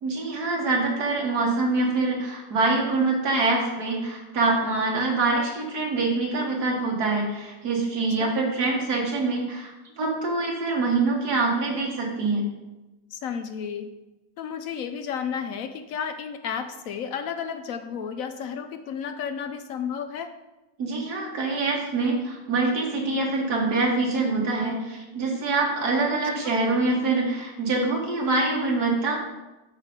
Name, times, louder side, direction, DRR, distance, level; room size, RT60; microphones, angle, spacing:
voice 1, 0.0-9.7 10.0-12.5 20.8-29.2, right 3 dB, 75° right, -1 dB, 2.1 m, -25 dB
voice 2, 13.1-13.9 14.4-20.3 26.4-26.5, left 7 dB, 70° left, 8 dB, 0.9 m, -32 dB
7.2 x 5.7 x 5.2 m, 1.1 s
omnidirectional pair, 1.7 m